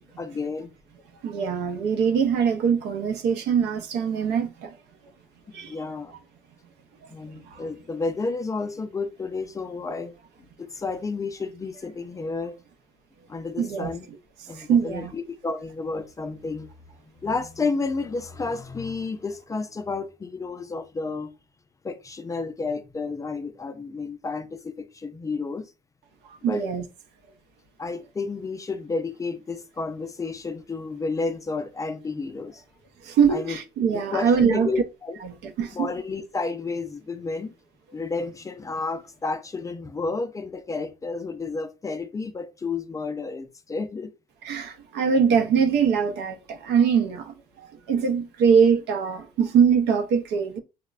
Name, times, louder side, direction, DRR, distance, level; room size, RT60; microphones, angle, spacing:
voice 1, 0.2-0.7 5.6-6.2 7.1-10.1 10.6-12.6 13.3-14.1 14.5-16.7 17.2-21.3 21.8-25.7 26.4-26.6 27.8-32.6 33.3-33.6 33.9-35.2 35.7-37.5 37.9-44.1, left 4 dB, 20° left, 0.3 m, -31 dB
voice 2, 1.2-4.7 5.5-5.7 13.6-13.9 14.6-15.1 26.4-26.8 33.0-34.7 35.2-35.9 44.4-47.3 47.9-50.6, right 7 dB, 80° right, 0.5 m, -22 dB
3.9 x 2.1 x 2.3 m
cardioid pair, 110°, 17 cm